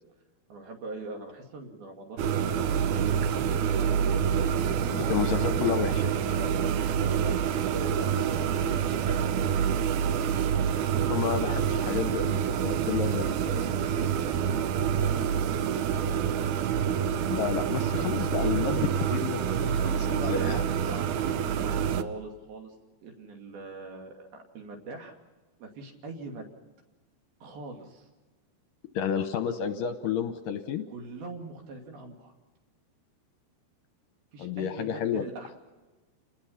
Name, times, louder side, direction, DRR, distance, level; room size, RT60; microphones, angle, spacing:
voice 1, 0.5-5.3 5.6-5.8 6.4-9.3 13.9-15.4 15.9-16.1 19.8-22.7 23.0-25.1 25.6-26.5 27.4-28.1 30.9-32.3 34.3-35.6, right 3 dB, 65° right, 2 dB, 4.4 m, -42 dB
sound 1, 2.2-22.0, right 8 dB, 85° right, 1.7 m, -27 dB
voice 2, 4.9-5.9 11.1-13.8 17.3-20.6 28.9-30.8 34.4-35.2, left 8 dB, 75° left, 8 dB, 2.1 m, -31 dB
29.5 x 19.5 x 5.8 m, 1.2 s
omnidirectional pair, 4.7 m